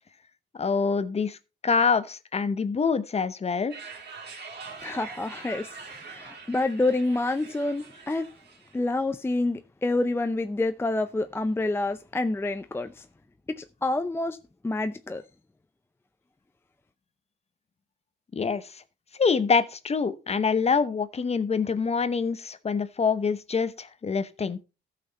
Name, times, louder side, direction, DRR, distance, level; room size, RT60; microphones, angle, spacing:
voice 1, 0.6-1.4 1.6-3.7 18.3-18.6 19.2-24.6, left 5 dB, 30° left, 0.9 m, -25 dB
sound 1, 3.7-8.8, right 5 dB, 60° right, 3.4 m, -44 dB
voice 2, 4.8-5.8 6.1-8.3 8.7-13.1 13.5-14.4 14.6-15.2, left 2 dB, 10° left, 0.5 m, -28 dB
13.5 x 5.9 x 4.1 m
cardioid pair, 90°, 20 cm